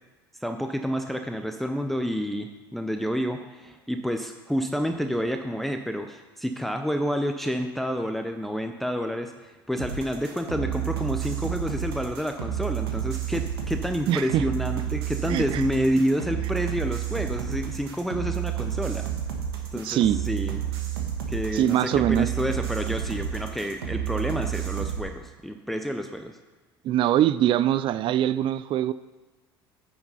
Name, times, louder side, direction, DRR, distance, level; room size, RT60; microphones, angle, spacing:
voice 1, 0.4-19.1 19.7-20.6 21.3-26.3, equal, ahead, 6 dB, 0.6 m, -29 dB
sound 1, 9.8-25.0, right 10 dB, 80° right, 1.3 m, -30 dB
voice 2, 14.1-14.4 15.3-15.6 19.8-20.2 21.5-22.3 26.8-28.9, right 11 dB, 45° right, 15 dB, 0.3 m, -23 dB
9.4 x 4.7 x 5.5 m, 1.3 s
hypercardioid pair, 70°, 12 cm